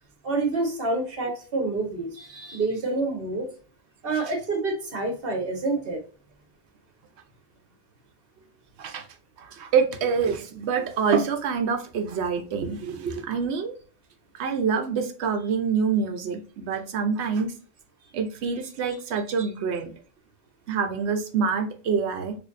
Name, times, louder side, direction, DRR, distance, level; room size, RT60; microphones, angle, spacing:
voice 1, 0.2-3.5 4.0-6.0, right 3 dB, 60° right, 3 dB, 1.3 m, -27 dB
voice 2, 9.4-13.7 14.4-17.5 18.1-19.9 20.7-22.4, right 6 dB, 80° right, 6 dB, 0.9 m, -26 dB
4.3 x 2.6 x 2.5 m, 0.40 s
omnidirectional pair, 1.1 m